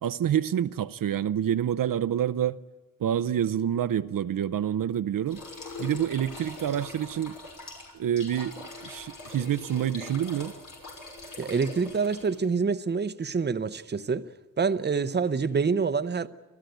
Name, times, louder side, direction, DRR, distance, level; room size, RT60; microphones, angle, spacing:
voice 1, 0.0-2.6 3.0-5.4 5.8-7.4 7.9-10.5, right 10 dB, 75° right, 0.6 m, -27 dB
sound 1, 5.3-12.5, left 3 dB, 70° left, 6.0 m, -42 dB
voice 2, 11.4-14.3 14.6-16.3, right 5 dB, 30° right, 0.7 m, -26 dB
29.5 x 13.0 x 9.2 m
wide cardioid pair, 110°, 33 cm